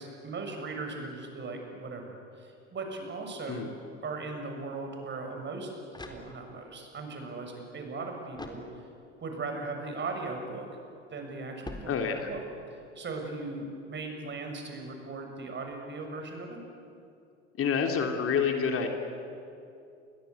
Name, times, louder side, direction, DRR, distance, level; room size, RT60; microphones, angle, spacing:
voice 1, 0.0-3.7 4.0-5.7 6.1-8.6 9.2-10.7 11.1-11.9 12.2-12.4 13.0-16.6, right 3 dB, 30° right, 3 dB, 7.0 m, -38 dB
sound 1, 5.9-6.8 8.3-9.2 11.6-12.5, left 2 dB, 10° left, 3.9 m, -45 dB
voice 2, 11.9-12.3 17.6-18.9, left 6 dB, 40° left, 3 dB, 3.2 m, -28 dB
29.5 x 23.0 x 8.4 m, 2.6 s
figure-of-eight pair, 70°, 35 cm